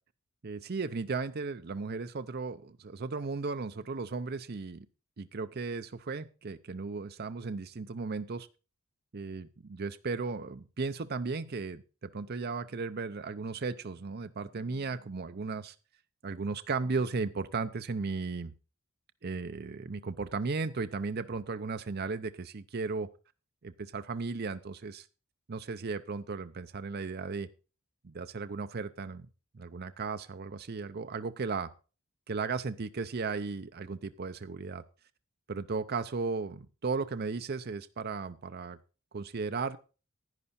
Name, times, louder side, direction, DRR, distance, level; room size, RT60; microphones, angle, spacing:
voice 1, 0.4-4.9 5.2-8.5 9.1-15.8 16.2-18.5 19.2-23.1 23.6-25.1 25.5-27.5 28.0-29.3 29.5-31.7 32.3-34.8 35.5-38.8 39.1-39.8, right 4 dB, 45° right, 10 dB, 0.6 m, -35 dB
11.0 x 9.8 x 4.2 m, 0.34 s
head